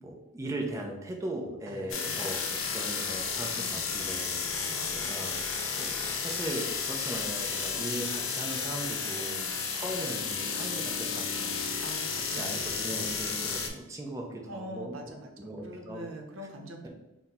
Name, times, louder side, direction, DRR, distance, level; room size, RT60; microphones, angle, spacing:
voice 1, 0.0-5.3 5.7-9.4 9.7-11.8 12.1-15.1 15.4-16.0, right 1 dB, 15° right, 1 dB, 0.5 m, -39 dB
voice 2, 1.7-2.6 3.6-3.8 4.4-5.0 9.2-9.6 11.8-12.5 14.5-16.9, right 1 dB, 85° right, 3 dB, 0.7 m, -44 dB
sound 1, 1.9-13.7, left 5 dB, 80° left, 0.6 m, -32 dB
4.1 x 2.1 x 4.1 m, 0.97 s
head